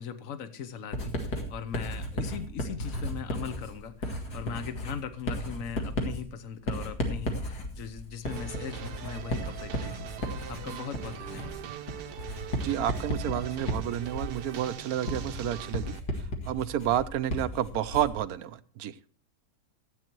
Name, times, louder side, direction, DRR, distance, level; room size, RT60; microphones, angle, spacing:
voice 1, 0.0-10.1 10.5-11.6, left 8 dB, 55° left, 1.4 m, -39 dB
Writing, 0.9-18.3, equal, 75° left, 2.6 m, -35 dB
sound 1, 8.2-16.0, right 9 dB, 85° right, 1.5 m, -42 dB
voice 2, 12.6-16.0 16.5-18.9, right 11 dB, 70° right, 1.1 m, -30 dB
14.0 x 8.7 x 4.5 m
omnidirectional pair, 1.7 m